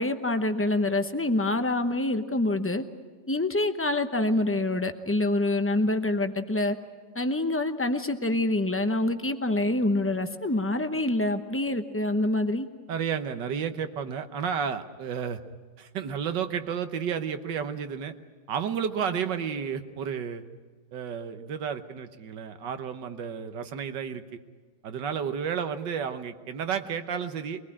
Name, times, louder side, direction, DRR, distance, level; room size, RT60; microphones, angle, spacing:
voice 1, 0.0-2.8 3.3-6.8 7.1-12.7, left 2 dB, 15° left, 7 dB, 0.5 m, -26 dB
voice 2, 12.9-15.4 15.8-18.1 18.5-20.4 20.9-24.2 24.8-27.6, right 7 dB, 75° right, 9 dB, 1.7 m, -31 dB
24.0 x 19.5 x 8.7 m, 1.5 s
omnidirectional pair, 1.9 m